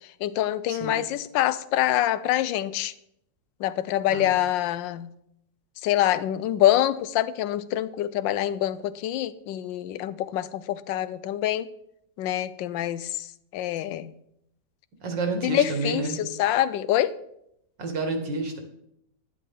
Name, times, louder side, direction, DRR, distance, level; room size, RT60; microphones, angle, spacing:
voice 1, 0.2-2.9 3.6-5.1 5.8-11.7 12.2-13.3 13.5-14.1 15.4-17.1, left 12 dB, 90° left, 16 dB, 1.3 m, -25 dB
voice 2, 15.0-16.2 17.8-18.6, right 3 dB, 80° right, 5 dB, 2.2 m, -29 dB
11.0 x 9.9 x 3.7 m, 0.76 s
omnidirectional pair, 1.9 m